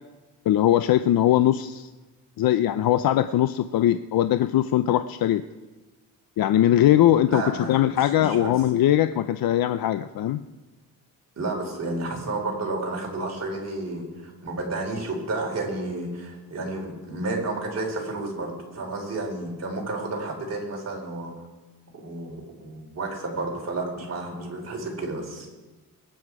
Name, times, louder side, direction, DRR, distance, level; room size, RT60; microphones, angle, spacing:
voice 1, 0.5-1.9 2.4-5.4 6.4-10.4, left 12 dB, 80° left, 11 dB, 0.6 m, -21 dB
voice 2, 7.3-7.8 8.2-8.5 11.4-21.3 21.9-25.5, right 2 dB, 45° right, -1 dB, 4.4 m, -31 dB
21.5 x 9.5 x 4.8 m, 1.2 s
wide cardioid pair, 120°, 35 cm